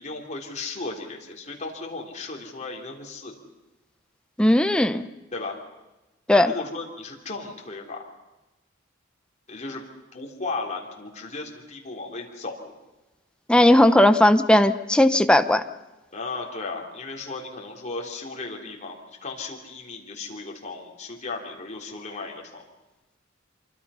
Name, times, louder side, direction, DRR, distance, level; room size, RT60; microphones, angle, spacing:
voice 1, 0.0-3.3 5.3-5.6 6.3-8.1 9.5-9.8 10.1-12.7 16.1-22.6, left 3 dB, 35° left, 0 dB, 3.3 m, -35 dB
voice 2, 4.4-5.1 6.3-6.5 13.5-15.6, left 1 dB, 5° left, 9 dB, 0.8 m, -17 dB
26.0 x 24.0 x 5.7 m, 1.1 s
head